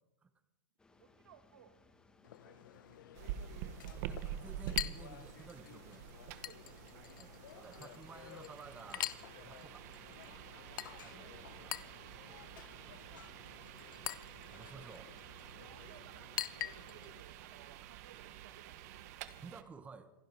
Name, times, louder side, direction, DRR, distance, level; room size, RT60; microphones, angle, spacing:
sound 1, 0.8-13.8, left 3 dB, 5° left, 1.2 m, -67 dB
voice 1, 1.0-1.8 2.4-4.8 6.3-7.1 7.5-8.0 9.4-9.5 10.5-11.5 12.2-13.8 14.5-15.1 15.5-19.3 19.5-19.8, right 8 dB, 90° right, 9 dB, 1.8 m, -63 dB
Chink clink, 2.2-17.2, left 13 dB, 75° left, 0.9 m, -46 dB
sound 2, 3.1-19.6, right 11 dB, 50° right, 1.2 m, -48 dB
voice 2, 4.1-6.0 7.2-9.1 9.4-9.9 11.0-11.7 14.5-15.1 19.4-20.1, right 5 dB, 10° right, 10 dB, 1.1 m, -53 dB
27.0 x 11.0 x 4.6 m, 0.92 s
supercardioid pair, 150°, 11 cm